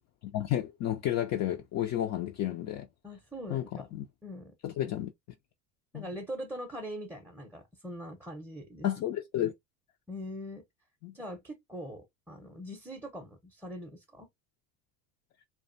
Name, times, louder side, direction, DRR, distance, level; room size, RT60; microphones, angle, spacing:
voice 1, 0.3-2.9 3.5-4.0 4.6-5.1 5.9-6.1 8.8-9.5 11.0-11.1, left 12 dB, 40° left, 0.4 m, -31 dB
voice 2, 3.0-3.9 4.2-4.5 5.9-8.9 10.1-10.6 11.1-14.3, equal, 5° right, 0.6 m, -42 dB
2.4 x 2.2 x 2.5 m
hypercardioid pair, 75°, 42 cm